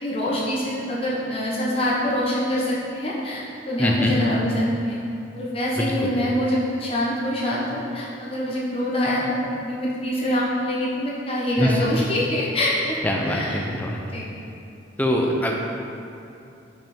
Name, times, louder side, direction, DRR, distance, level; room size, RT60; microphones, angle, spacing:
voice 1, 0.0-3.4 3.7-5.0 5.3-13.7 14.1-14.2, left 1 dB, 30° left, -6 dB, 1.2 m, -25 dB
voice 2, 3.8-4.1 5.8-6.1 11.6-11.8 13.0-14.0 15.0-15.6, equal, 10° left, 0 dB, 0.6 m, -23 dB
5.8 x 5.7 x 4.4 m, 2.7 s
head